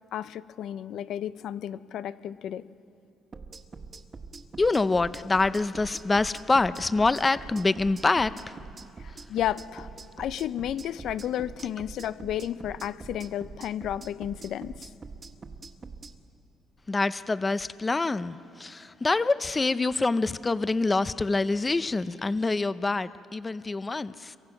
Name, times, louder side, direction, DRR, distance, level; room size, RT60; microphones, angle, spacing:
voice 1, 0.1-2.7 9.0-9.9 10.2-14.9, left 11 dB, 70° left, 0.7 m, -32 dB
sound 1, 3.3-16.1, right 4 dB, 30° right, 1.6 m, -43 dB
voice 2, 4.6-8.6 9.1-9.2 16.9-24.4, left 3 dB, 20° left, 0.6 m, -26 dB
28.0 x 23.5 x 6.0 m
cardioid pair, 110°, 0 cm